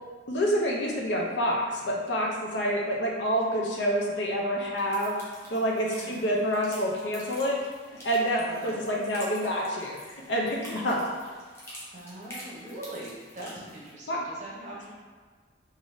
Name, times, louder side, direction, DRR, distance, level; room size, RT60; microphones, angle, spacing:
voice 1, 0.3-5.1 5.5-7.6 8.0-10.0 10.3-11.1 14.1-14.2, equal, 65° left, -1 dB, 0.5 m, -27 dB
sound 1, 4.8-13.9, equal, 15° left, 0.6 m, -47 dB
voice 2, 8.4-8.8 11.9-14.9, right 1 dB, 35° right, -5 dB, 0.7 m, -42 dB
3.3 x 2.5 x 2.6 m, 1.5 s
head